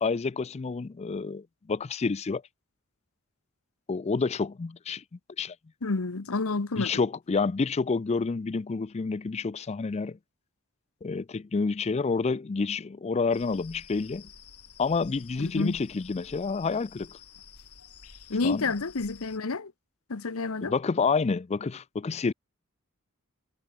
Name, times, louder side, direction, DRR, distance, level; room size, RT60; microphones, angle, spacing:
voice 1, 0.0-2.4 3.9-5.0 5.4-5.6 6.8-10.2 11.0-14.2 14.8-17.1 18.4-18.6 20.6-22.3, left 4 dB, 30° left, 0.4 m, -29 dB
voice 2, 5.8-6.9 15.4-15.8 18.3-19.7 20.1-20.7, left 3 dB, 65° left, 1.0 m, -29 dB
sound 1, 13.3-19.4, left 6 dB, 85° left, 6.8 m, -51 dB
head